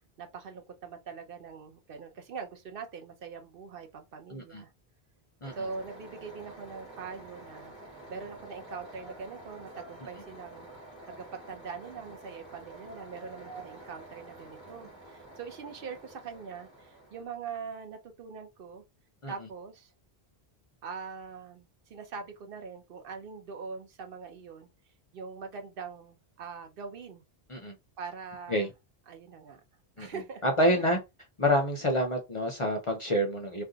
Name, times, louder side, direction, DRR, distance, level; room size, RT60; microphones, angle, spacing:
voice 1, 0.2-4.7 5.6-7.8 8.1-10.7 11.0-18.8 19.3-19.9 20.8-24.7 25.1-27.2 28.0-28.7 29.1-29.6 30.0-30.4 30.7-30.9, right 5 dB, 65° right, 0.8 m, -42 dB
voice 2, 4.3-4.6 5.4-5.5 19.2-19.3 27.5-27.7 28.5-28.7 30.0-30.1 30.4-31.0 31.4-33.6, equal, 40° left, 0.5 m, -27 dB
sound 1, 5.4-17.3, right 2 dB, 25° right, 1.1 m, -48 dB
2.5 x 2.3 x 3.8 m
omnidirectional pair, 1.1 m